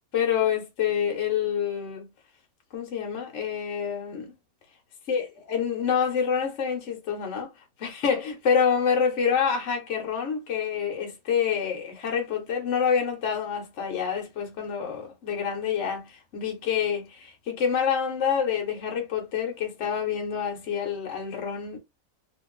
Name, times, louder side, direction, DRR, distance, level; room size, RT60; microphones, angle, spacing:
voice 1, 0.1-2.1 2.7-4.3 5.1-7.5 7.8-21.8, left 7 dB, 55° left, 1.1 m, -27 dB
2.9 x 2.5 x 3.0 m
omnidirectional pair, 1.5 m